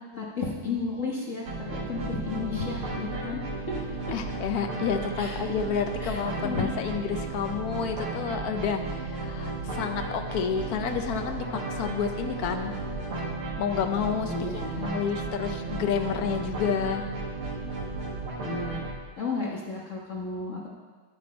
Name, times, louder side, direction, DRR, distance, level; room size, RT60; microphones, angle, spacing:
voice 1, 0.1-3.4 3.7-3.8 5.2-5.4 6.0-6.8 14.3-15.0 18.4-18.8 19.2-20.7, left 4 dB, 40° left, -3 dB, 1.4 m, -33 dB
sound 1, 1.5-18.9, right 3 dB, 75° right, 2.5 m, -34 dB
voice 2, 4.1-12.7 13.6-17.0, left 7 dB, 75° left, 6 dB, 0.8 m, -30 dB
10.5 x 9.5 x 4.2 m, 1.4 s
omnidirectional pair, 2.4 m